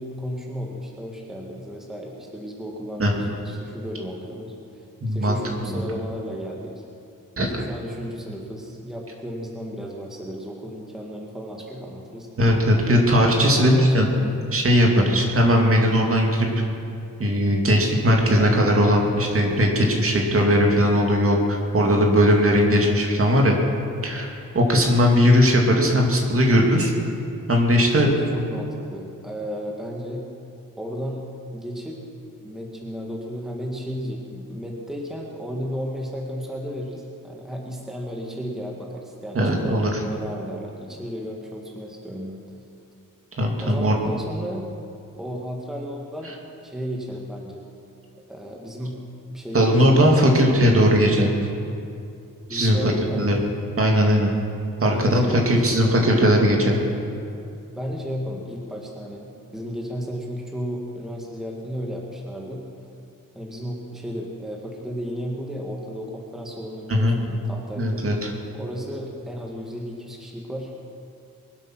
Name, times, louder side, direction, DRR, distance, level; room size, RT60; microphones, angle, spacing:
voice 1, 0.0-6.8 7.4-12.3 13.5-14.2 14.9-15.1 21.8-22.1 24.6-24.9 27.9-30.2 30.8-31.2 31.5-32.0 32.4-42.4 43.6-44.7 45.2-47.7 48.3-49.0 49.3-50.3 52.5-53.3 54.8-56.3 57.8-62.6 63.3-68.0 68.5-70.9, equal, ahead, -1 dB, 1.6 m, -33 dB
voice 2, 5.0-5.8 7.4-7.5 12.4-14.1 14.5-16.5 17.2-23.6 24.0-24.3 24.5-26.9 27.5-28.1 39.3-40.0 43.4-43.9 49.5-51.4 52.5-53.4 53.8-54.3 54.8-56.8 66.9-67.2 67.8-68.3, equal, 40° right, 0 dB, 2.4 m, -19 dB
23.0 x 8.5 x 6.0 m, 2.5 s
wide cardioid pair, 140°, 34 cm